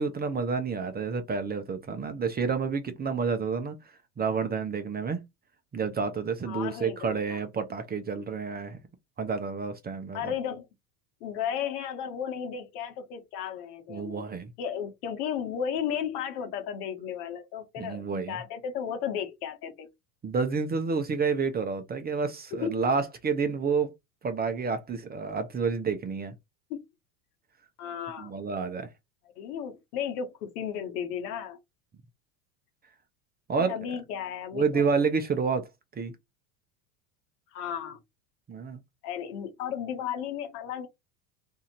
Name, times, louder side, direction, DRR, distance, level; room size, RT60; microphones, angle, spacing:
voice 1, 0.0-3.8 4.2-5.2 5.7-8.8 9.2-10.3 13.9-14.5 17.8-18.4 20.2-23.9 24.2-26.3 28.2-28.9 33.5-33.7 34.5-35.7 36.0-36.1 38.5-38.8, right 5 dB, 20° right, 0.6 m, -29 dB
voice 2, 6.4-7.4 10.1-10.7 11.2-14.3 14.6-19.9 22.5-22.9 26.7-26.8 27.8-28.3 29.4-31.6 33.5-34.9 37.5-38.0 39.0-40.9, left 8 dB, 75° left, 1.2 m, -34 dB
2.7 x 2.5 x 4.2 m
supercardioid pair, 100°, 45 cm